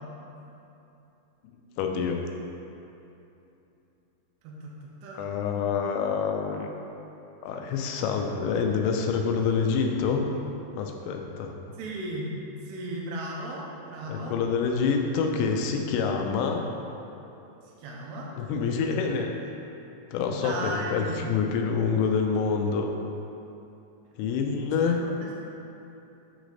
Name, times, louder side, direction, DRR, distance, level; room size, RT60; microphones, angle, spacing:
voice 1, 1.8-2.2 5.2-6.7 7.4-10.2 10.7-11.5 14.1-16.6 18.4-19.3 20.1-22.9 24.2-25.0, left 5 dB, 90° left, 3 dB, 2.9 m, -27 dB
voice 2, 4.4-5.7 11.8-12.3 12.7-14.4 17.8-18.3 20.3-21.3 24.8-25.4, right 1 dB, 80° right, -3 dB, 2.6 m, -36 dB
9.0 x 3.2 x 3.8 m, 2.9 s
omnidirectional pair, 5.2 m